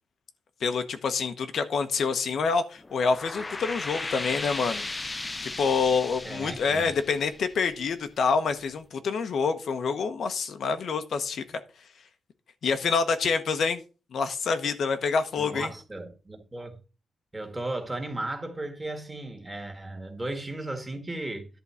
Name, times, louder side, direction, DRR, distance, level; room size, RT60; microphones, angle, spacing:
voice 1, 0.6-4.9 5.4-11.6 12.6-13.8 14.1-15.7, left 5 dB, 65° left, 1.0 m, -27 dB
sound 1, 2.8-8.0, left 2 dB, 20° left, 0.5 m, -36 dB
voice 2, 6.2-6.9 15.4-16.8 17.3-21.5, right 2 dB, 15° right, 1.8 m, -35 dB
11.0 x 3.8 x 6.9 m
wide cardioid pair, 145°, 0 cm